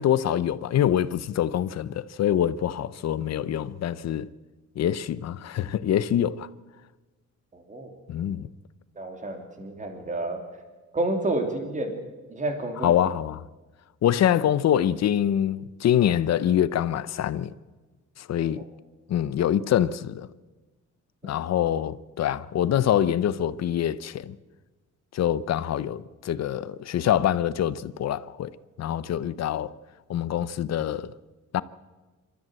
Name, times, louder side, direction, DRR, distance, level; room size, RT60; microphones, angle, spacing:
voice 1, 0.0-4.3 4.8-6.5 8.1-8.5 12.8-13.4 14.0-17.5 18.2-18.6 19.1-20.3 21.2-24.4 25.1-28.5 28.8-29.7 30.1-31.1 31.5-31.6, left 10 dB, 60° left, 0.7 m, -25 dB
voice 2, 7.5-7.9 8.9-10.4 10.9-12.0 12.3-12.9 18.6-18.7 21.2-21.4, right 2 dB, 25° right, 2.8 m, -30 dB
27.0 x 13.5 x 7.6 m
wide cardioid pair, 170°, 30 cm